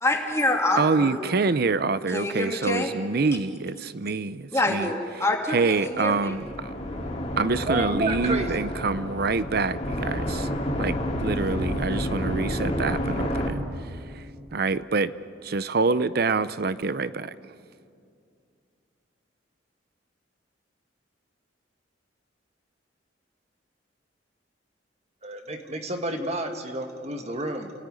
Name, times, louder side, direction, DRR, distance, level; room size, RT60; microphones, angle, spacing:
voice 1, 0.0-1.1 2.1-2.9 4.5-6.4, left 2 dB, 15° left, 1 dB, 2.9 m, -26 dB
voice 2, 0.8-4.9 5.5-6.5 7.4-10.5 10.8-11.0 11.2-13.6 14.2-14.3 14.5-15.1 15.4-17.3, right 4 dB, 55° right, 15 dB, 0.7 m, -26 dB
sound 1, 6.0-13.5, equal, 35° left, 3.2 m, -30 dB
voice 3, 7.3-8.7 25.2-27.7, right 1 dB, 35° right, 4 dB, 1.7 m, -30 dB
29.5 x 17.5 x 9.7 m, 2.4 s
head